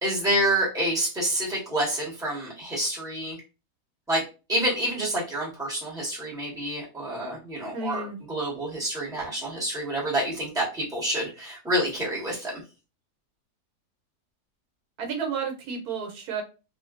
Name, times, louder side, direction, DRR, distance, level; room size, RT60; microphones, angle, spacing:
voice 1, 0.0-3.4 4.1-4.2 4.5-12.6, right 1 dB, 5° right, -5 dB, 1.2 m, -28 dB
voice 2, 7.7-8.2 15.0-16.4, right 5 dB, 80° right, 3 dB, 1.2 m, -31 dB
2.7 x 2.4 x 2.4 m, 0.30 s
omnidirectional pair, 1.6 m